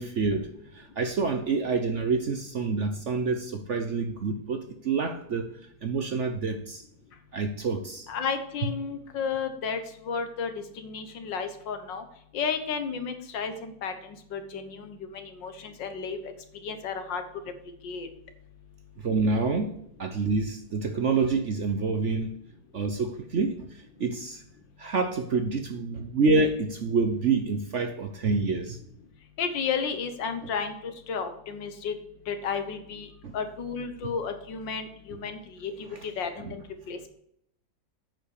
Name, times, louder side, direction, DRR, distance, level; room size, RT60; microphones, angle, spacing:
voice 1, 0.0-5.5 5.8-6.8 7.3-8.1 19.0-22.3 22.7-24.4 24.8-28.8 33.2-33.4 35.9-36.0 36.4-36.5, right 4 dB, 50° right, 7 dB, 0.9 m, -27 dB
voice 2, 8.1-12.0 12.3-16.3 16.6-17.2 17.8-18.1 29.4-31.9 32.3-37.1, left 6 dB, 75° left, 8 dB, 1.9 m, -33 dB
9.0 x 5.7 x 6.5 m, 0.73 s
omnidirectional pair, 2.0 m